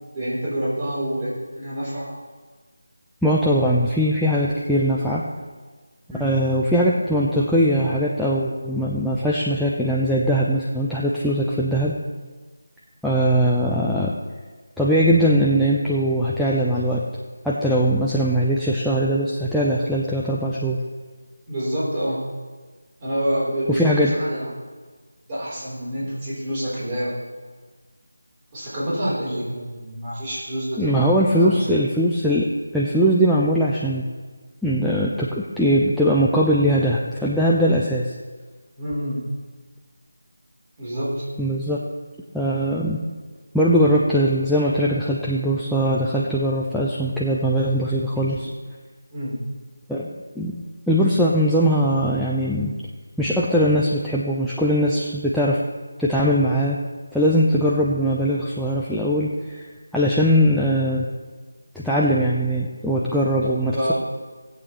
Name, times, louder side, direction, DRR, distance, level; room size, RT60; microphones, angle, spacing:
voice 1, 0.1-2.1 6.1-6.4 21.5-22.2 23.0-24.5 25.3-27.1 28.5-31.1 31.4-31.8 38.8-39.2 40.8-41.2 48.2-48.4 49.1-49.4 63.4-63.9, equal, 25° right, -9 dB, 4.1 m, -27 dB
voice 2, 3.2-5.2 6.2-11.9 13.0-14.1 14.8-17.0 17.4-20.8 23.7-24.1 30.8-32.5 32.7-34.1 34.6-38.1 41.4-41.8 42.3-43.0 43.5-48.5 49.9-50.1 50.4-50.5 50.9-52.7 53.2-55.6 56.0-56.8 57.1-59.7 59.9-61.1 61.7-63.9, equal, ahead, -7 dB, 0.5 m, -20 dB
18.0 x 8.2 x 3.2 m, 1.4 s
figure-of-eight pair, 160°, 0 cm